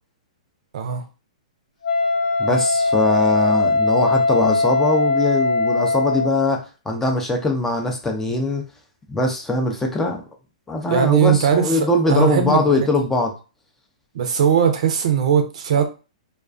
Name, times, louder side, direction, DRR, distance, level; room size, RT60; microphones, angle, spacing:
Wind instrument woodwind instrument, 1.8-6.5, left 3 dB, 85° left, 0.7 m, -20 dB
voice 1, 2.4-8.6 9.1-10.2 10.7-13.3, left 2 dB, 10° left, 0.4 m, -21 dB
voice 2, 10.9-11.7 12.1-12.9 14.1-15.8, right 8 dB, 60° right, 0.5 m, -19 dB
2.3 x 2.2 x 2.4 m
hypercardioid pair, 135°, 4 cm